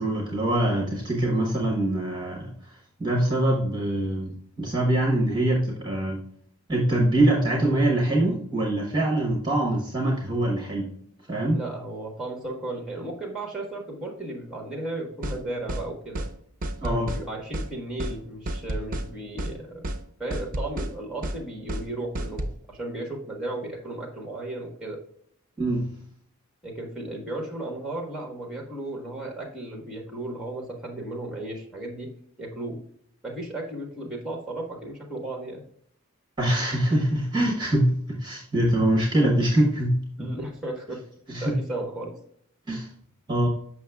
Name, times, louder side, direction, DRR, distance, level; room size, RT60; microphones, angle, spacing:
voice 1, 0.0-2.5 3.0-4.3 4.6-6.2 6.7-10.9 11.3-11.6 16.8-17.1 25.6-25.9 36.4-40.3 41.3-41.5 42.7-42.9 43.3-43.5, right 1 dB, 20° right, -1 dB, 1.2 m, -24 dB
voice 2, 11.5-16.3 16.8-19.9 20.2-25.0 26.6-32.1 32.4-32.8 33.2-35.6 40.2-41.0 41.4-42.1, right 2 dB, 5° right, 1 dB, 1.5 m, -35 dB
sound 1, 15.2-15.4 15.7-15.9 16.2-16.3 16.6-17.2 17.5-17.7 18.0-18.2 18.5-19.1 19.4-19.5 19.8-20.0 20.3-20.9 21.2-21.4 21.7-21.9 22.2-22.5, right 1 dB, 40° right, 0.6 m, -30 dB
7.0 x 5.9 x 2.3 m, 0.65 s
head